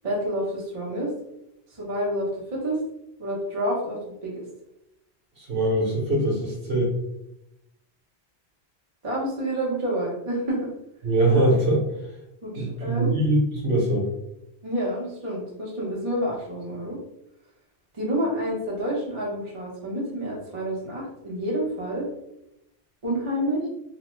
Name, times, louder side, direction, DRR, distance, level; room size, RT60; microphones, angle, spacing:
voice 1, 0.0-1.1 1.7-2.8 3.2-4.4 9.0-10.6 12.4-13.2 14.6-17.0 17.9-22.1 23.0-23.6, right 1 dB, 30° right, -4 dB, 0.7 m, -28 dB
voice 2, 5.4-6.9 11.0-11.8 12.5-14.1, right 1 dB, 55° right, -3 dB, 1.1 m, -22 dB
3.0 x 2.0 x 3.0 m, 0.85 s
omnidirectional pair, 1.2 m